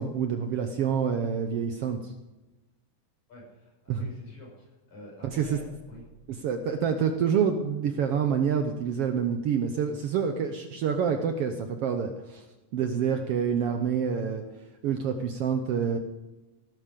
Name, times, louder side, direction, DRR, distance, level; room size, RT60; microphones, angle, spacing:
voice 1, 0.0-2.1 3.9-4.0 5.3-5.6 6.4-12.4 12.7-14.4 14.8-16.0, right 7 dB, 65° right, 6 dB, 1.5 m, -27 dB
voice 2, 3.3-6.0, equal, 70° left, -3 dB, 8.0 m, -48 dB
sound 1, 5.2-7.0, right 2 dB, 20° left, 5.8 m, -56 dB
17.0 x 11.0 x 5.2 m, 1.1 s
omnidirectional pair, 3.4 m